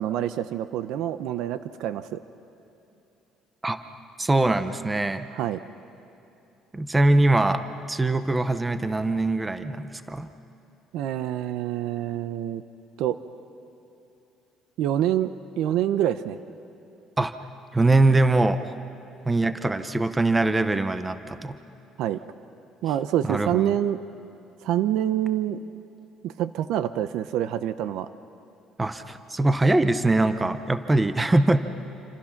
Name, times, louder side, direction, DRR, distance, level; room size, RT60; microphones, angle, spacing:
voice 1, 0.0-2.2 5.3-5.6 10.9-12.6 13.0-13.2 14.8-16.4 22.0-22.2 22.8-24.0 24.6-25.6 26.2-28.1, right 11 dB, 70° right, 12 dB, 0.7 m, -26 dB
voice 2, 4.2-5.3 6.7-7.6 7.9-10.3 17.2-17.3 17.7-18.7 19.3-21.6 23.2-23.7 28.8-31.7, right 2 dB, 10° right, 10 dB, 0.6 m, -22 dB
28.0 x 26.0 x 5.9 m, 2.8 s
cardioid pair, 170°, 0 cm